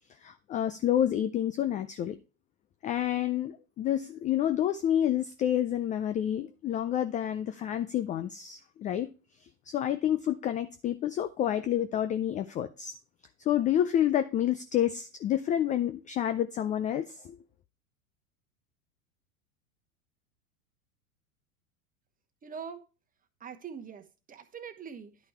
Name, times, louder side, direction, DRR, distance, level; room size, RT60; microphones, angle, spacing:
voice 1, 0.2-2.2 2.8-9.1 9.7-13.0 13.5-17.4, left 11 dB, 20° left, 0.4 m, -29 dB
voice 2, 22.4-22.8 23.4-25.1, right 7 dB, 20° right, 1.1 m, -43 dB
10.5 x 5.4 x 4.5 m
hypercardioid pair, 95°, 41 cm